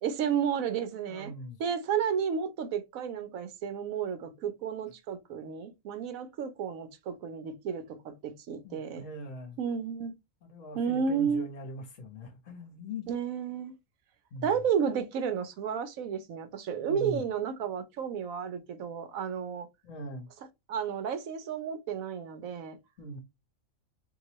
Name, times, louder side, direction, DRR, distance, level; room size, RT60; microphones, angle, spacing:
voice 1, 0.0-1.3 1.6-9.0 9.6-10.1 10.7-11.5 13.1-13.7 14.4-19.7 20.7-22.8, right 7 dB, 80° right, 1.1 m, -32 dB
voice 2, 1.1-1.6 8.6-9.6 10.4-13.1 14.3-14.6 16.8-17.2 19.8-20.3 23.0-23.2, left 1 dB, 65° left, 1.4 m, -41 dB
3.8 x 2.7 x 2.9 m
omnidirectional pair, 1.4 m